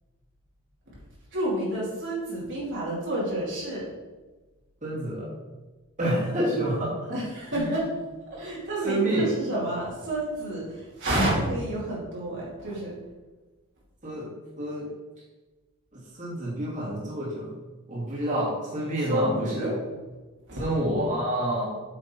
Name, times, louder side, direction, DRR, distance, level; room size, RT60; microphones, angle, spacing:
voice 1, 1.3-3.9 7.1-8.0 8.3-12.9 19.1-19.8 20.5-20.6, right 1 dB, 55° right, -6 dB, 2.6 m, -29 dB
voice 2, 4.8-5.3 6.0-7.2 7.5-7.7 8.8-9.3 14.0-14.3 14.6-14.9 16.2-17.5 17.9-19.7 20.6-21.6, right 1 dB, 35° right, -6 dB, 2.6 m, -28 dB
8.4 x 5.9 x 4.4 m, 1.2 s
head